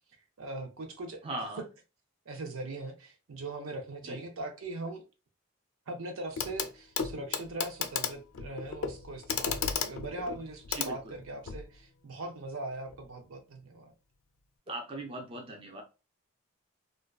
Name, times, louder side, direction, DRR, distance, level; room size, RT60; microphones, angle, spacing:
voice 1, 0.4-1.2 2.3-5.0 5.9-13.9, right 2 dB, 70° right, 0.6 m, -40 dB
voice 2, 1.2-1.6 4.0-4.2 10.7-11.1 14.7-15.8, right 2 dB, 25° right, 0.4 m, -39 dB
Clock, 6.4-6.7 7.0-11.7 12.9-13.0, left 7 dB, 70° left, 0.4 m, -34 dB
2.5 x 2.2 x 2.3 m
head